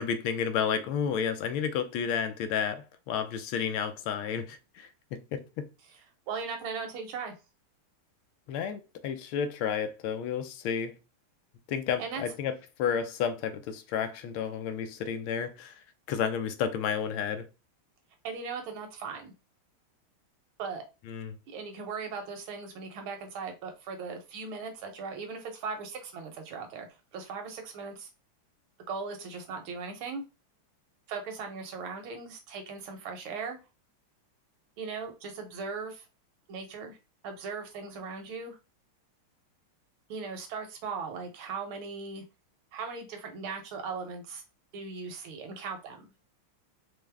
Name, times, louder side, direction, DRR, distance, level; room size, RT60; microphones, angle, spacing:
voice 1, 0.0-5.7 8.5-10.9 11.7-15.8 16.1-17.5 21.1-21.4, left 7 dB, 85° left, 1.5 m, -31 dB
voice 2, 6.3-7.3 12.0-12.2 18.2-19.3 20.6-20.8 21.5-26.9 27.1-28.1 28.9-30.2 31.1-33.6 34.8-36.1 36.5-37.0 37.2-38.6 40.1-42.2 42.7-44.4 44.7-46.1, right 5 dB, 75° right, 1.7 m, -38 dB
4.7 x 2.0 x 3.3 m
omnidirectional pair, 2.3 m